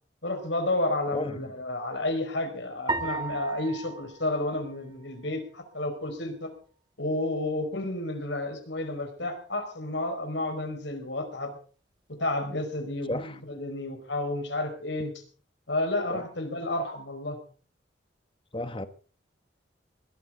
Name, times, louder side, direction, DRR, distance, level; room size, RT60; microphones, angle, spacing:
voice 1, 0.2-6.5 7.0-11.5 12.2-15.1 15.7-17.4, left 2 dB, 75° left, 4.9 m, -31 dB
voice 2, 1.1-1.5 13.1-13.4 16.1-16.2 18.5-18.9, left 1 dB, 25° left, 1.1 m, -33 dB
sound 1, 2.9-5.4, right 3 dB, 25° right, 2.2 m, -35 dB
20.5 x 14.0 x 3.8 m
head